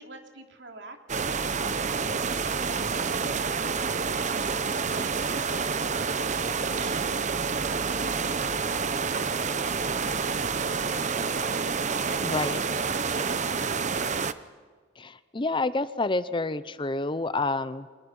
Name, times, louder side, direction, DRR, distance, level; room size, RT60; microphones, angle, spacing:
voice 1, 0.0-4.4 4.8-12.4 13.1-14.1, right 3 dB, 80° right, 4 dB, 2.9 m, -47 dB
sound 1, 1.1-14.3, right 5 dB, 40° right, 0.9 m, -28 dB
voice 2, 12.2-12.6 15.0-17.9, left 3 dB, 30° left, 14 dB, 0.8 m, -28 dB
29.5 x 25.0 x 5.5 m, 1.5 s
head